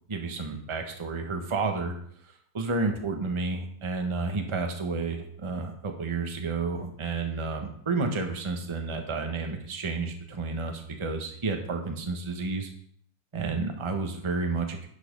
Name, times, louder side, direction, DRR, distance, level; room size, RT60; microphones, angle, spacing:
voice 1, 0.1-1.9 2.5-12.7 13.3-14.9, right 3 dB, 20° right, 4 dB, 0.8 m, -31 dB
10.5 x 5.6 x 5.3 m, 0.63 s
omnidirectional pair, 2.3 m